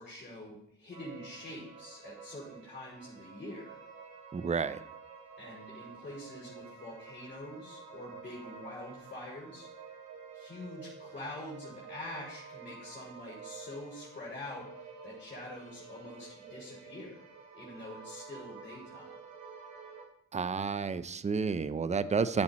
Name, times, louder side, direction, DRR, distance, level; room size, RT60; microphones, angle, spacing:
voice 1, 0.0-3.8 5.4-9.7 10.3-17.2 17.5-19.1, left 1 dB, 30° left, -6 dB, 5.4 m, -45 dB
sound 1, 0.9-20.1, right 5 dB, 90° right, 3.6 m, -50 dB
voice 2, 4.3-4.8 20.3-22.4, right 5 dB, 25° right, 14 dB, 0.6 m, -30 dB
14.0 x 7.8 x 4.3 m, 0.70 s
cardioid pair, 90°, 30 cm